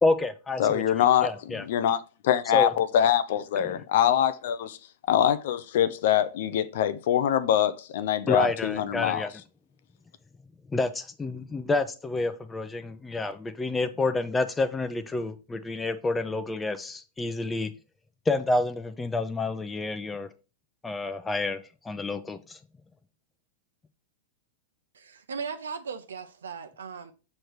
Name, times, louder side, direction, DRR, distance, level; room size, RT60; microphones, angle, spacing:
voice 1, 0.0-0.8 1.2-1.6 2.5-2.8 3.6-3.8 8.3-9.3 10.7-17.7 18.3-20.3 20.8-22.6, left 2 dB, 15° left, 0.7 m, -29 dB
voice 2, 0.6-4.8 5.1-9.3, left 10 dB, 65° left, 0.5 m, -24 dB
voice 3, 24.9-27.1, right 5 dB, 80° right, 0.8 m, -37 dB
6.3 x 3.3 x 4.6 m
hypercardioid pair, 105°, 0 cm